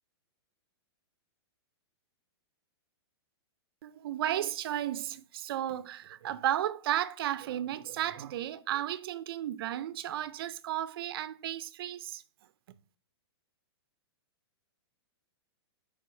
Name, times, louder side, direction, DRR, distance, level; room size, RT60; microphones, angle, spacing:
voice 1, 3.8-12.2, right 12 dB, 60° right, 0.5 m, -34 dB
6.7 x 5.0 x 3.2 m
hypercardioid pair, 140°, 14 cm